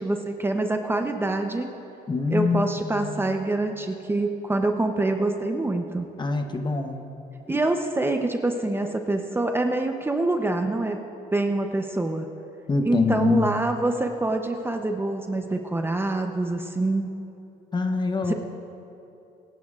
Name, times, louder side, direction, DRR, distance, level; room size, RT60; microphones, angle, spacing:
voice 1, 0.0-1.7 2.3-6.1 7.5-11.0 11.3-12.3 12.8-17.2 18.3-18.4, right 2 dB, 15° right, 4 dB, 0.7 m, -25 dB
voice 2, 2.1-3.4 6.2-7.1 12.7-13.5 17.7-18.3, left 4 dB, 25° left, 6 dB, 0.9 m, -25 dB
26.0 x 10.5 x 2.4 m, 2.9 s
cardioid pair, 110°, 17 cm